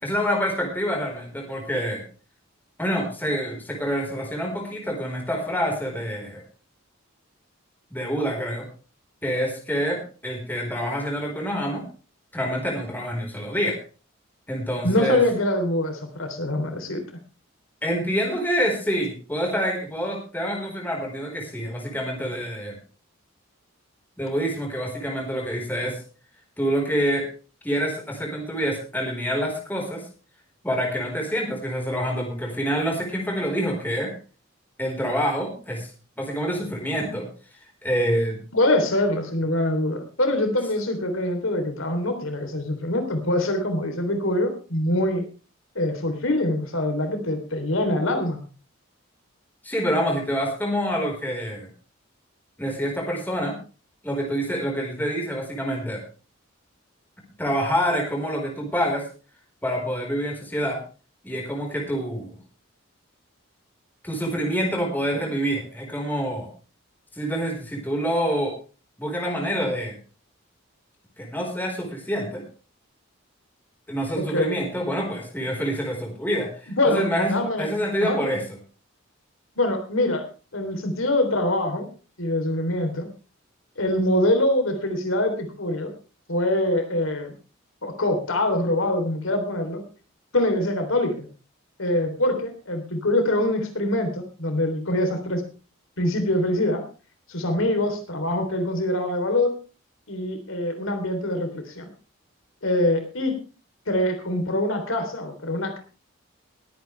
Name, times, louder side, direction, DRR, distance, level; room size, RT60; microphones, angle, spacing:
voice 1, 0.0-2.0 2.8-6.4 7.9-8.6 9.2-11.8 12.3-13.8 14.5-15.2 17.8-22.8 24.2-26.0 26.6-27.3 27.6-30.0 30.6-34.1 34.8-35.9 36.2-37.3 37.8-38.4 49.6-51.7 52.6-53.6 54.0-56.0 57.4-59.0 59.6-60.8 61.2-62.4 64.0-66.5 67.1-68.6 69.0-69.9 71.2-72.4 73.9-78.4, equal, 10° left, 1 dB, 4.4 m, -26 dB
voice 2, 14.8-17.0 38.5-45.2 45.7-48.4 74.3-74.6 76.7-77.6 78.0-78.3 79.6-80.3 80.5-81.9 82.2-83.1 83.8-85.9 86.3-87.3 87.8-89.8 90.3-91.2 91.8-95.4 96.0-96.8 97.3-99.5 100.1-101.9 102.6-103.4 103.9-105.8, left 1 dB, 75° left, 5 dB, 3.4 m, -24 dB
22.0 x 9.3 x 3.3 m, 0.34 s
head